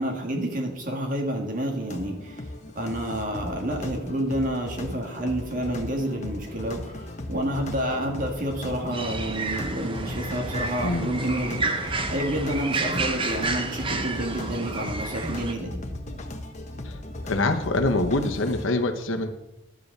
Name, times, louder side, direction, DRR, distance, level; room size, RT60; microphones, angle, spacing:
voice 1, 0.0-2.5 2.8-15.8, right 1 dB, 40° right, 2 dB, 1.8 m, -29 dB
sound 1, 1.8-18.7, left 1 dB, 35° left, 1.0 m, -37 dB
sound 2, 8.9-15.5, right 3 dB, 25° right, 0.8 m, -31 dB
voice 2, 10.8-11.2 16.8-17.0 17.3-19.3, left 2 dB, 75° left, 6 dB, 1.0 m, -25 dB
12.0 x 5.1 x 6.6 m, 0.93 s
head